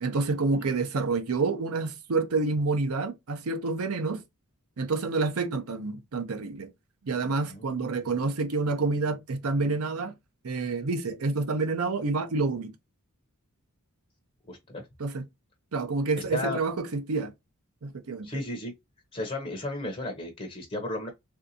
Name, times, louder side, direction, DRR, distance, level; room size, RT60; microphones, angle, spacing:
voice 1, 0.0-4.2 4.8-6.7 7.0-10.1 10.4-12.7 15.0-15.2 15.7-17.3 17.8-18.3, right 3 dB, 75° right, 0.6 m, -28 dB
voice 2, 14.5-14.9 16.3-16.6 18.2-18.7 19.1-21.1, left 1 dB, 30° left, 0.7 m, -34 dB
3.5 x 2.6 x 2.6 m
head